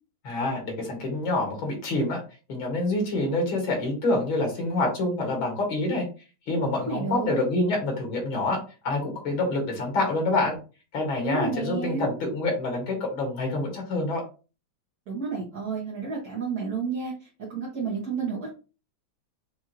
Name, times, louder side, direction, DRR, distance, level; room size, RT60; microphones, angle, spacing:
voice 1, 0.2-2.2 2.5-6.1 6.5-10.6 10.9-14.2, left 2 dB, 85° left, 1 dB, 2.5 m, -27 dB
voice 2, 6.9-7.4 11.2-12.1 15.1-18.5, right 4 dB, 55° right, -5 dB, 1.6 m, -31 dB
6.0 x 2.6 x 3.0 m, 0.33 s
omnidirectional pair, 2.1 m